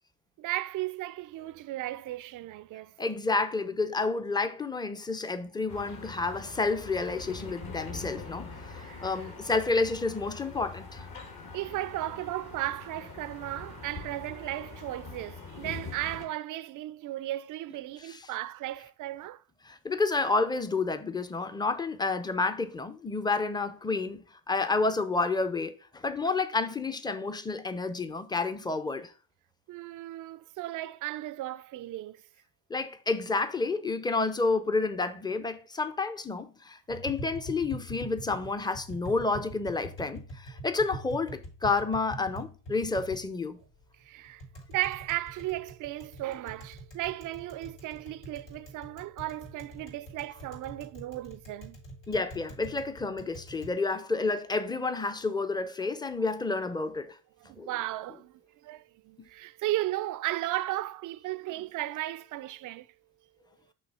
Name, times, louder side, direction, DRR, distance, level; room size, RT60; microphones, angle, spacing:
voice 1, 0.4-3.0 8.7-9.1 11.5-19.4 29.7-32.2 44.0-44.4 44.7-51.8 57.4-62.9, right 15 dB, 45° right, 0.4 m, -35 dB
voice 2, 3.0-11.1 18.1-18.2 19.6-29.1 32.7-43.6 52.1-57.2 57.6-57.7, left 3 dB, 10° left, 0.5 m, -30 dB
sound 1, 5.7-16.2, left 3 dB, 55° left, 1.9 m, -43 dB
Tap, 36.9-53.7, right 1 dB, 75° left, 3.4 m, -45 dB
6.2 x 2.8 x 5.5 m
supercardioid pair, 70°, 44 cm